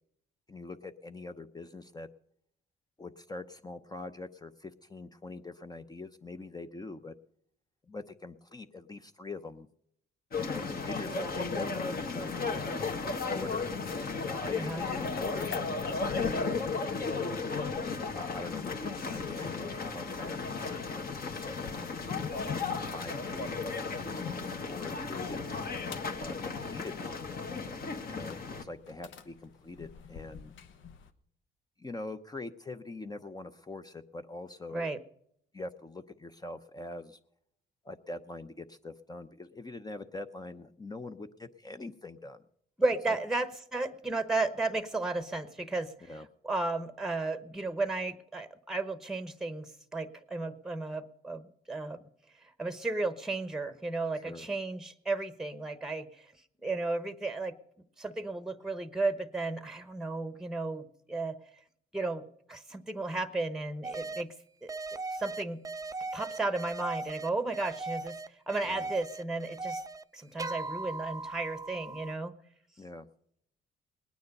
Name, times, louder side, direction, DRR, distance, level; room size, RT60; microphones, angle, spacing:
voice 1, 0.5-2.1 3.0-7.1 7.9-9.7 10.4-12.3 12.7-13.7 14.2-17.5 18.1-22.3 22.9-25.4 26.2-27.2 28.1-30.5 31.8-34.9 35.5-37.2 37.8-42.4 43.1-43.2 46.1-46.3 54.2-54.5 68.7-68.9 72.8-73.1, left 2 dB, 20° left, 8 dB, 0.7 m, -44 dB
sound 1, 10.3-28.6, left 4 dB, 50° left, 1.8 m, -35 dB
sound 2, 12.4-31.1, left 7 dB, 75° left, 1.1 m, -49 dB
voice 2, 14.5-14.8 34.7-35.0 42.8-46.1 46.4-52.0 52.6-56.3 56.6-57.5 58.0-61.4 61.9-64.3 64.6-64.7 65.2-65.6 66.1-68.1 68.5-69.8 70.1-72.3, right 3 dB, ahead, 12 dB, 1.0 m, -34 dB
sound 3, 63.8-64.2 64.7-70.0 70.4-72.1, right 3 dB, 15° right, 0.5 m, -38 dB
19.0 x 9.4 x 5.3 m, 0.72 s
cardioid pair, 90°, 20 cm